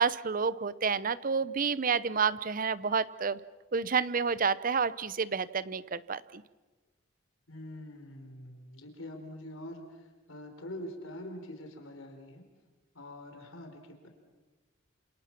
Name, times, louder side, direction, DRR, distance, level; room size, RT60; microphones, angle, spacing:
voice 1, 0.0-3.4 3.7-6.4, right 5 dB, 45° right, 16 dB, 0.7 m, -29 dB
voice 2, 7.5-12.4 12.9-14.1, left 1 dB, 85° left, 5 dB, 4.1 m, -44 dB
28.0 x 27.5 x 6.0 m, 1.2 s
head